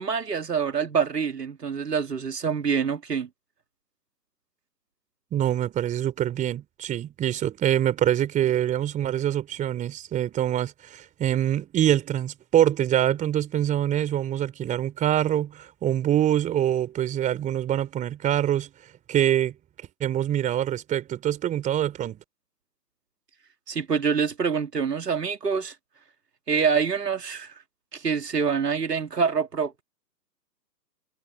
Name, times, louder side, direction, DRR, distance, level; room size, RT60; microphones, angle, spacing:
voice 1, 0.0-3.3 23.7-25.7 26.5-27.6 27.9-29.8, right 6 dB, 70° right, 2.3 m, -26 dB
voice 2, 5.3-18.7 19.1-19.6 20.0-22.2, right 11 dB, 15° right, 3.8 m, -25 dB
figure-of-eight pair, 125°, 50 cm